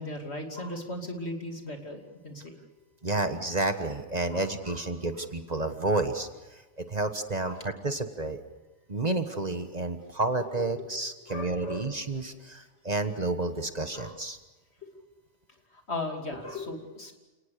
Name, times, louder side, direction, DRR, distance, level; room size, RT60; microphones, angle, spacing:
voice 1, 0.0-2.6 4.3-4.9 5.1-5.3 7.4-7.7 10.8-10.9 11.2-11.9 13.9-14.2 14.8-14.9 15.7-17.1, left 2 dB, 65° left, 3 dB, 3.2 m, -38 dB
voice 2, 3.0-6.3 6.8-8.4 8.9-14.4, right 2 dB, 35° right, 8 dB, 1.4 m, -30 dB
29.5 x 19.0 x 6.7 m, 1.2 s
omnidirectional pair, 1.2 m